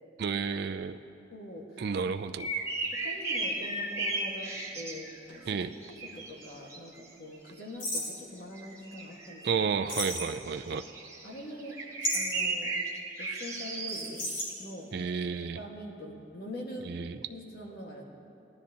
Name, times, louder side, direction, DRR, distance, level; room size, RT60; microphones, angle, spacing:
voice 1, 0.2-1.0 1.8-2.5 5.5-5.7 9.4-10.8 14.9-15.6 16.8-17.2, right 5 dB, 60° right, 8 dB, 0.4 m, -31 dB
voice 2, 1.3-1.8 2.9-5.6 6.1-9.6 11.2-11.8 12.1-12.7 13.2-14.3 14.6-14.9 15.6-16.9 17.3-18.0, left 1 dB, 55° left, -1 dB, 1.6 m, -43 dB
sound 1, 2.2-2.3 3.2-5.9 6.2-6.3 7.8-8.2 9.9-10.7 12.0-12.5 13.9-14.5, left 1 dB, 90° left, 2.7 m, -34 dB
sound 2, 2.4-5.4 5.6-7.1 7.5-8.2 8.5-14.5 15.3-15.5, right 2 dB, 15° right, 1.3 m, -36 dB
19.5 x 12.5 x 2.9 m, 2.7 s
head